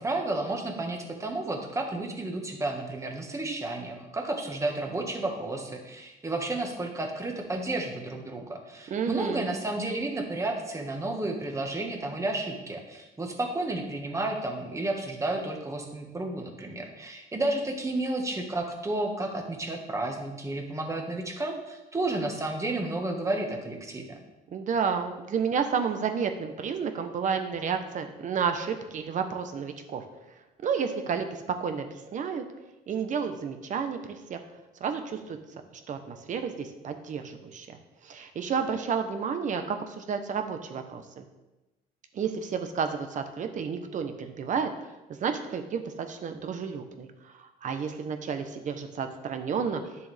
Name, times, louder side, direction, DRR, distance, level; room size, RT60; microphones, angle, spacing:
voice 1, 0.0-24.2, right 2 dB, 15° right, 2 dB, 1.5 m, -32 dB
voice 2, 8.9-9.4 24.5-30.0 30.6-32.4 32.9-34.4 34.8-35.4 35.9-37.8 38.0-41.2 42.1-44.7 45.2-47.1 47.4-49.8, right 6 dB, 50° right, 7 dB, 1.1 m, -31 dB
10.5 x 6.8 x 3.5 m, 1.0 s
cardioid pair, 110°, 17 cm